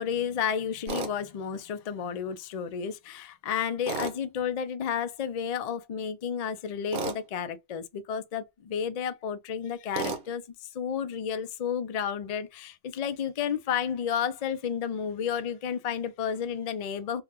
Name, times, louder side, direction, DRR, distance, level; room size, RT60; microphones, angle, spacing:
voice 1, 0.0-17.2, left 8 dB, 75° left, 0.3 m, -32 dB
Tools, 0.9-1.1 3.9-4.2 6.9-7.2 9.9-10.2, right 4 dB, 50° right, 0.8 m, -31 dB
3.6 x 2.2 x 2.9 m
omnidirectional pair, 1.3 m